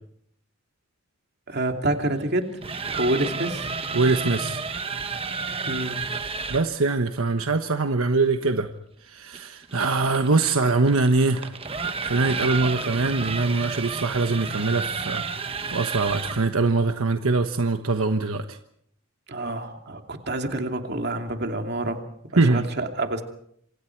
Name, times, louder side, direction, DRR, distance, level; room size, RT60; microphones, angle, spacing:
voice 1, 1.5-2.6 2.9-3.7 5.7-6.0 19.3-22.0 22.3-23.2, right 1 dB, 50° right, 4 dB, 2.7 m, -27 dB
sound 1, 2.4-6.7 9.3-16.5, right 4 dB, 25° right, 1.2 m, -31 dB
voice 2, 3.9-4.6 6.5-8.7 9.0-11.5 12.0-18.6 22.4-22.7, right 3 dB, 80° right, 7 dB, 1.2 m, -23 dB
27.0 x 26.0 x 4.7 m, 0.68 s
head